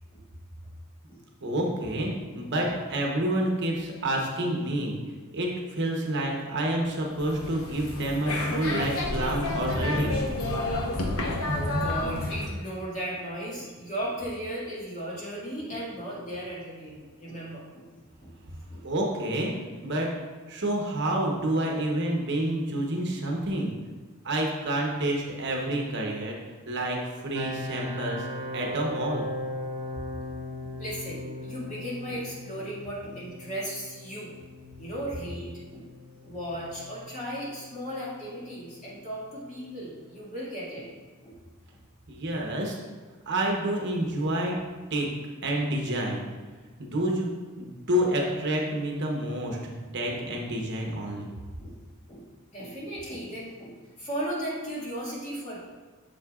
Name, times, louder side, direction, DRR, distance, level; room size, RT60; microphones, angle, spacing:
voice 1, 1.4-5.0 5.3-10.2 18.8-19.5 19.8-20.1 20.5-23.7 24.2-26.4 26.7-28.3 28.5-29.3 42.1-42.8 43.3-44.6 44.9-45.1 45.4-46.3 46.8-47.3 47.6-51.3, right 1 dB, 55° right, 0 dB, 1.0 m, -28 dB
sound 1, 7.1-12.5, left 1 dB, 70° left, 1.0 m, -29 dB
voice 2, 11.5-17.8 18.2-18.3 18.7-18.8 30.1-30.2 30.6-34.3 34.8-35.9 36.2-40.9 41.2-41.4 41.7-41.8 50.1-50.2 51.6-51.7 52.1-52.2 52.5-55.6, equal, 35° left, -7 dB, 2.1 m, -36 dB
sound 2, 27.3-40.2, left 1 dB, 90° right, 0.7 m, -39 dB
7.6 x 6.9 x 2.4 m, 1.4 s
head